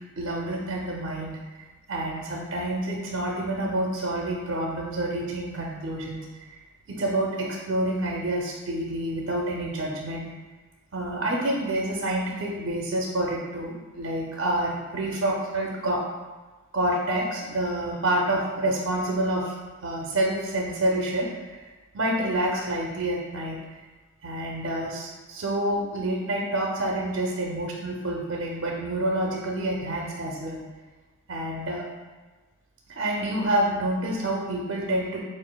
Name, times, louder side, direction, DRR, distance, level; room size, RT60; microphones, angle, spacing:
voice 1, 0.2-1.4 1.9-6.6 6.9-10.3 10.9-16.0 16.7-19.6 19.8-21.7 21.9-23.6 24.2-30.6 31.3-31.9 32.9-35.2, right 1 dB, 60° right, -1 dB, 0.5 m, -28 dB
6.0 x 2.4 x 2.2 m, 1.2 s
head